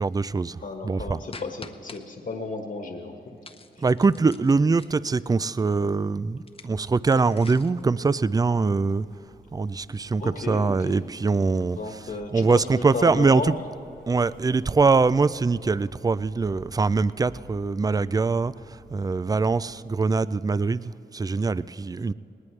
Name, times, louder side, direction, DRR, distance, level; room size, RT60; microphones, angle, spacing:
voice 1, 0.0-1.2 3.8-9.0 9.5-11.8 12.3-13.5 14.1-22.1, right 4 dB, 20° right, 17 dB, 0.3 m, -23 dB
voice 2, 0.6-3.4 3.7-3.8 10.2-11.0 11.7-13.5, left 3 dB, 55° left, 3 dB, 1.5 m, -34 dB
sound 1, 1.3-2.0 3.4-5.3 6.4-7.8, left 4 dB, 30° left, 0.7 m, -46 dB
Motor vehicle (road) / Engine starting, 7.4-19.8, right 1 dB, 75° right, 1.8 m, -51 dB
19.5 x 19.5 x 3.3 m, 2.9 s
cardioid pair, 80°, 18 cm